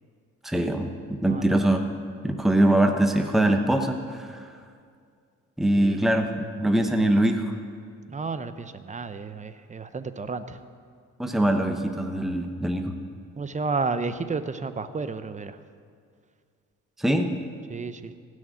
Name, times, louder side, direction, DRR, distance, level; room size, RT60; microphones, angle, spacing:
voice 1, 0.4-1.8 2.2-4.5 5.6-7.5 11.2-12.9 17.0-17.3, right 1 dB, ahead, 5 dB, 1.0 m, -23 dB
voice 2, 1.2-1.6 5.8-6.0 8.1-10.6 13.4-15.6 17.7-18.1, right 4 dB, 25° right, 11 dB, 0.8 m, -32 dB
16.0 x 6.5 x 9.1 m, 2.2 s
cardioid pair, 90°, 30 cm